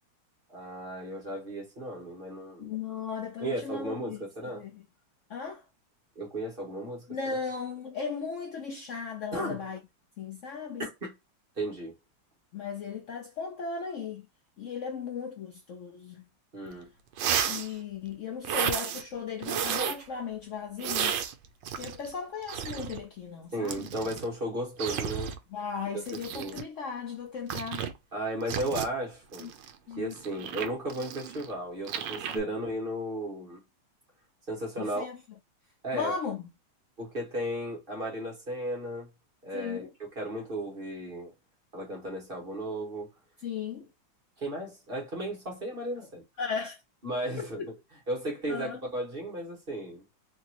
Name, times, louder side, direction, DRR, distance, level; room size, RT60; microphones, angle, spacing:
voice 1, 0.5-2.7 3.4-4.6 6.1-7.3 9.3-9.6 10.8-11.1 11.6-11.9 16.5-16.9 23.5-25.3 26.3-26.6 28.1-29.5 30.0-33.6 34.5-35.1 35.8-36.1 37.0-39.1 39.4-39.8 40.1-41.3 41.7-43.1 44.4-46.2 47.0-47.6 48.1-50.0, right 1 dB, 30° right, 1.5 m, -35 dB
voice 2, 2.6-4.8 5.3-5.6 7.1-9.8 10.2-10.9 12.5-14.3 14.6-16.2 17.5-21.2 21.7-23.9 25.5-27.9 29.4-29.5 29.9-30.2 32.3-32.6 34.8-35.2 35.9-36.5 39.5-39.9 43.4-43.9 46.4-46.8 47.4-47.7 48.5-48.8, left 6 dB, 85° left, 0.6 m, -36 dB
sound 1, 16.7-16.8 17.1-17.7 18.5-19.0 19.4-20.0 20.8-22.1 22.4-23.0 23.7-24.3 24.8-25.4 26.1-26.6 27.5-27.9 28.5-28.9 29.3-31.5 31.9-32.4, right 8 dB, 75° right, 1.3 m, -32 dB
3.6 x 2.9 x 2.9 m
omnidirectional pair, 2.1 m